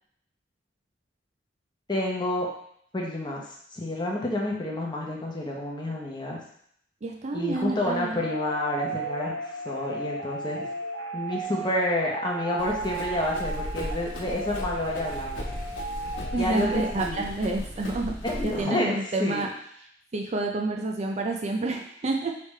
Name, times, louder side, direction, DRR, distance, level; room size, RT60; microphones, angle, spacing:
voice 1, 1.9-2.5 2.9-6.4 7.3-9.4 9.6-10.7 11.1-15.5 16.4-17.2 18.2-19.5, left 1 dB, 25° left, -2 dB, 0.9 m, -29 dB
voice 2, 7.0-8.2 16.3-19.5 20.1-22.3, right 2 dB, 35° right, 2 dB, 0.4 m, -29 dB
sound 1, 8.1-17.0, right 1 dB, 80° right, 1.2 m, -34 dB
Run, 12.6-18.6, equal, 90° left, 1.0 m, -36 dB
4.9 x 3.3 x 3.2 m, 0.68 s
head